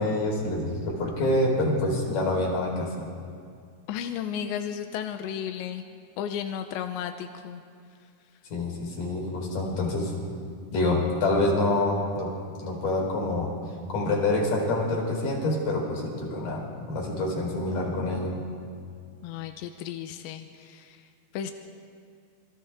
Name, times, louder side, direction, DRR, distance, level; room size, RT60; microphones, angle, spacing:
voice 1, 0.0-3.1 8.5-10.1 10.7-12.3 12.6-13.5 13.9-18.4, left 2 dB, 50° left, -1 dB, 5.8 m, -26 dB
voice 2, 3.9-5.8 6.2-7.6 19.2-21.1 21.3-21.5, left 9 dB, 90° left, 7 dB, 3.1 m, -34 dB
27.5 x 25.5 x 3.7 m, 2.2 s
omnidirectional pair, 5.2 m